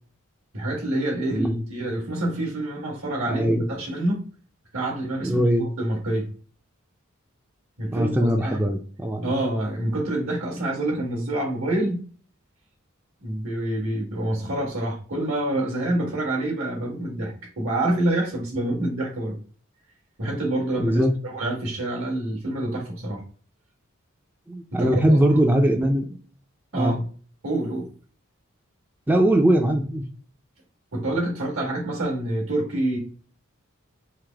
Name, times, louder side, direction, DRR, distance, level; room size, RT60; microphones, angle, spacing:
voice 1, 0.5-4.2 4.7-6.3 7.8-8.7 9.2-12.0 13.2-19.4 20.2-23.2 24.7-25.4 26.7-27.0 27.4-27.9 30.9-33.0, right 1 dB, 80° right, -1 dB, 1.6 m, -27 dB
voice 2, 3.3-3.6 5.2-5.7 7.9-9.3 20.8-21.1 24.5-26.0 26.7-27.0 29.1-30.0, right 1 dB, 10° right, 3 dB, 0.4 m, -21 dB
4.7 x 2.0 x 3.3 m, 0.41 s
head